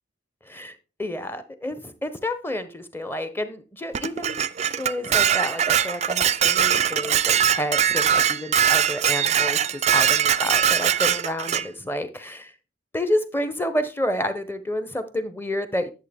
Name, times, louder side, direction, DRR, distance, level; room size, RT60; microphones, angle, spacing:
voice 1, 0.5-4.4 4.8-9.7 9.9-12.5 12.9-15.9, left 1 dB, 10° left, 10 dB, 0.9 m, -29 dB
Dishes pots and pans, 3.9-11.7, right 9 dB, 35° right, 0.4 m, -21 dB
11.0 x 7.6 x 3.6 m, 0.32 s
head